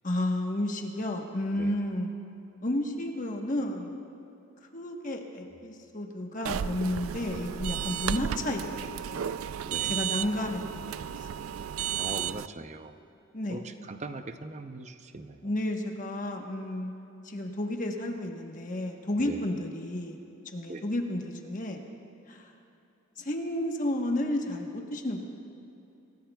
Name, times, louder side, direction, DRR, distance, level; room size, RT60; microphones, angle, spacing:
voice 1, 0.0-2.1 2.6-4.0 4.7-8.6 8.9-9.3 9.9-10.9 13.3-13.6 15.4-16.9 17.2-20.2 20.5-21.9 22.3-22.5 23.2-25.3, left 1 dB, 40° left, 2 dB, 1.2 m, -32 dB
sound 1, 6.4-12.5, right 9 dB, 80° right, 0.3 m, -33 dB
voice 2, 11.9-13.0 13.5-15.5 19.2-19.4 20.7-20.8, right 2 dB, 35° right, 8 dB, 0.6 m, -40 dB
27.5 x 17.5 x 2.3 m, 2.8 s
head